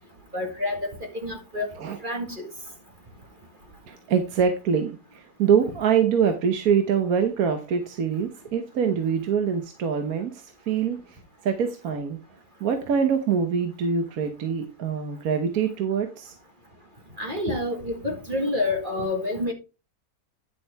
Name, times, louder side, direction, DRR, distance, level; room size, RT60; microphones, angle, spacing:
voice 1, 0.3-1.7 2.0-2.5 17.2-19.5, left 2 dB, 30° right, 1.9 m, -28 dB
voice 2, 3.9-11.0 11.4-12.2 12.6-16.3, right 7 dB, 70° right, 1.4 m, -24 dB
10.5 x 6.5 x 3.4 m
omnidirectional pair, 1.7 m